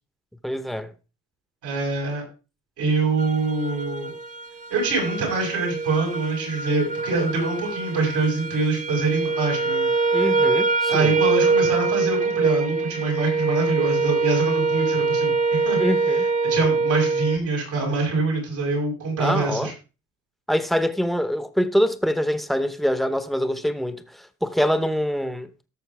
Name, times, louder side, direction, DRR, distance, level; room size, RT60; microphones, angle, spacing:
voice 1, 0.4-0.9 10.1-11.1 15.8-16.2 19.2-19.7 20.5-25.5, equal, ahead, 1.0 m, -24 dB
voice 2, 1.6-2.2 2.8-4.1 4.7-9.9 10.9-15.8 16.1-19.7, right 3 dB, 85° right, 6.4 m, -25 dB
sound 1, 3.2-17.4, right 4 dB, 25° right, 0.8 m, -24 dB
17.5 x 6.7 x 3.5 m
cardioid pair, 90°, 30 cm